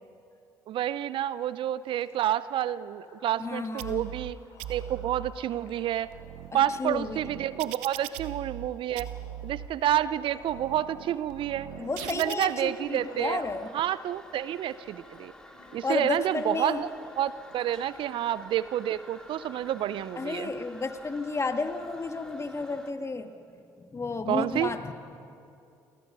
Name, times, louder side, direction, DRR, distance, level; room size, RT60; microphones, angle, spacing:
voice 1, 0.7-4.4 4.7-6.1 6.5-9.1 9.4-11.7 12.1-13.4 13.7-15.3 15.7-16.9 17.2-20.5 24.3-24.7, right 11 dB, 60° right, 17 dB, 0.6 m, -29 dB
Gurgling, 1.9-6.5 7.1-7.3 7.8-8.2 8.9-13.9 14.1-14.3 14.6-15.8 16.0-16.3 16.6-17.1 17.4-20.8, left 2 dB, 75° left, 7.4 m, -54 dB
voice 2, 3.4-4.1 6.5-7.2 11.8-13.7 15.8-16.8 20.2-24.9, left 3 dB, 30° left, 7 dB, 1.9 m, -32 dB
sound 1, 3.8-4.3 4.6-5.3 5.9-8.7 9.0-9.7 10.3-12.5, right 12 dB, 75° right, 0.9 m, -40 dB
Toilet flush, 12.5-22.9, left 1 dB, 5° left, 2.8 m, -51 dB
29.5 x 23.0 x 5.5 m, 2.6 s
hypercardioid pair, 50°, 10 cm